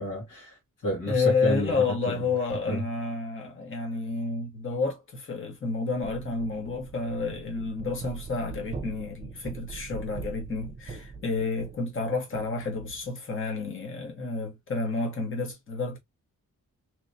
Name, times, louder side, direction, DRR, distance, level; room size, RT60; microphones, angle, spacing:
voice 1, 0.0-2.1 2.7-2.8, equal, 75° left, 1.7 m, -31 dB
voice 2, 1.1-16.0, left 3 dB, 40° left, 1.2 m, -30 dB
sound 1, 6.0-13.1, right 4 dB, 25° right, 0.7 m, -42 dB
3.1 x 3.0 x 2.6 m
wide cardioid pair, 140°, 33 cm